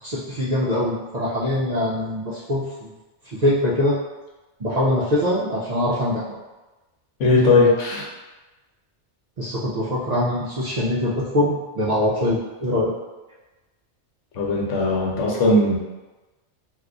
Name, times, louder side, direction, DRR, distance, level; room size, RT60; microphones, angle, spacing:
voice 1, 0.0-2.9 3.2-4.0 4.6-6.4 9.4-12.9, left 1 dB, 55° right, -8 dB, 0.5 m, -23 dB
voice 2, 7.2-8.1 14.3-15.8, left 2 dB, 85° left, -3 dB, 1.1 m, -18 dB
2.6 x 2.3 x 3.6 m, 1.1 s
omnidirectional pair, 1.2 m